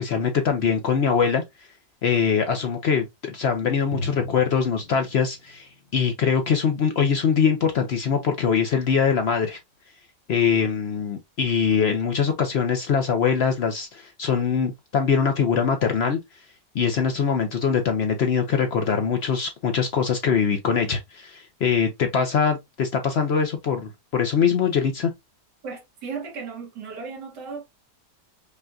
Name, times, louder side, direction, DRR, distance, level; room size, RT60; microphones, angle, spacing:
voice 1, 0.0-1.4 2.0-9.6 10.3-16.2 16.7-25.1, left 6 dB, 75° left, 0.5 m, -23 dB
Drum, 3.9-7.4, left 2 dB, 55° left, 0.9 m, -38 dB
voice 2, 25.6-27.6, right 5 dB, 75° right, 1.9 m, -35 dB
5.3 x 2.3 x 2.5 m
omnidirectional pair, 1.8 m